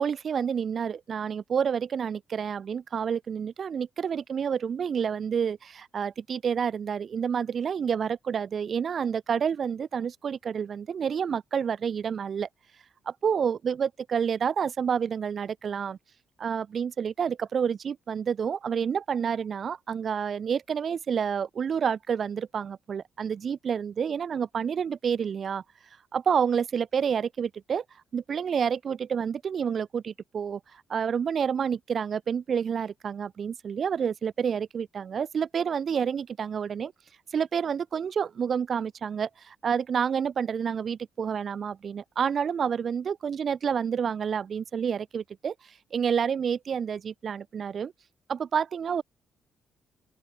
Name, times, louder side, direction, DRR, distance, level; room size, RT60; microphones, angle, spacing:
voice 1, 0.0-12.5 13.0-16.0 16.4-25.6 26.1-27.8 28.1-36.9 37.3-45.5 45.9-47.9 48.3-49.0, right 7 dB, 50° right, 3.4 m, -29 dB
open air
cardioid pair, 90°, 0 cm